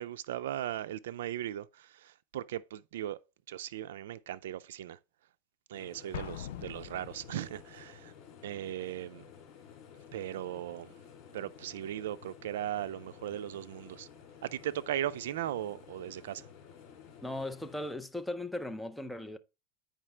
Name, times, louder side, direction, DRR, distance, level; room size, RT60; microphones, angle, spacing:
voice 1, 0.0-3.2 3.5-5.0 5.7-8.1 8.4-9.2 10.1-10.9 11.3-14.1 14.4-16.5, right 12 dB, 85° right, 0.3 m, -38 dB
sound 1, 5.7-17.9, left 7 dB, 50° left, 2.8 m, -53 dB
Explosion, 6.1-7.7, left 11 dB, 85° left, 0.6 m, -43 dB
voice 2, 17.2-19.4, left 1 dB, 5° left, 0.5 m, -37 dB
8.7 x 4.9 x 3.2 m
supercardioid pair, 130°, 0 cm